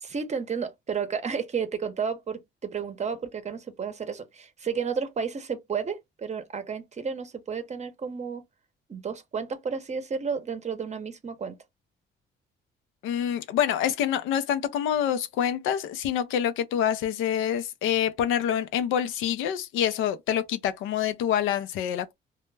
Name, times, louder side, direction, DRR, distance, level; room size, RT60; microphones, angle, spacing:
voice 1, 0.0-8.4 8.9-11.6, right 6 dB, 35° right, 0.6 m, -32 dB
voice 2, 13.0-22.1, left 9 dB, 90° left, 0.4 m, -26 dB
2.1 x 2.1 x 3.1 m
cardioid pair, 90°, 20 cm